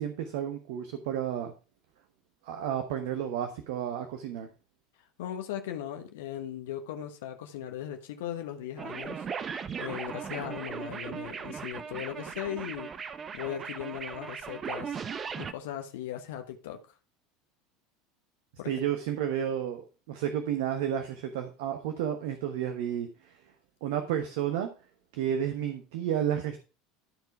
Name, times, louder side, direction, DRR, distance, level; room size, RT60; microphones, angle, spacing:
voice 1, 0.0-1.5 2.4-4.5 18.7-23.3 23.8-24.7 25.1-26.6, right 9 dB, 65° right, 1.1 m, -31 dB
voice 2, 5.2-9.2 9.8-12.9 13.3-15.0 15.4-16.8 18.6-18.7, left 10 dB, 65° left, 1.2 m, -38 dB
sound 1, 8.8-15.5, right 6 dB, 30° right, 0.8 m, -38 dB
13.0 x 4.7 x 4.6 m
figure-of-eight pair, 75°, 0 cm